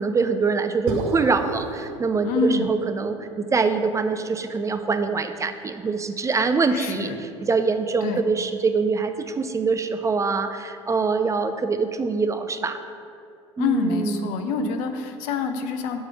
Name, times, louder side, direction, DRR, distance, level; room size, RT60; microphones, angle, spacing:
voice 1, 0.0-12.8 13.6-14.7, right 4 dB, 20° right, 8 dB, 0.4 m, -24 dB
sound 1, 0.9-5.2, right 3 dB, 65° right, 0.8 m, -35 dB
voice 2, 2.2-2.7 6.7-7.2 8.0-8.2 13.6-16.0, left 4 dB, 60° left, 7 dB, 0.7 m, -26 dB
6.3 x 4.9 x 4.7 m, 2.5 s
hypercardioid pair, 75°, 16 cm